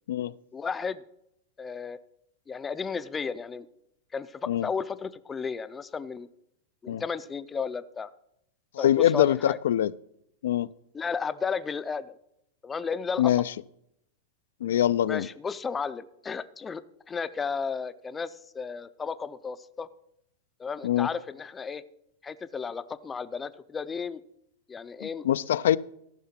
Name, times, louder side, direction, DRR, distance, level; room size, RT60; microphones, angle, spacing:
voice 1, 0.5-1.0 1.6-2.0 2.5-3.7 4.1-6.3 6.8-8.1 8.8-9.6 10.9-12.1 12.6-13.3 15.1-19.9 20.6-21.8 22.2-24.2 24.7-25.2, left 5 dB, 15° left, 14 dB, 0.4 m, -33 dB
voice 2, 8.7-9.9 10.4-10.7 13.2-13.4 14.6-15.3 20.8-21.1 25.0-25.8, left 11 dB, 90° left, 16 dB, 0.3 m, -24 dB
14.0 x 5.7 x 5.7 m, 0.77 s
supercardioid pair, 160°, 0 cm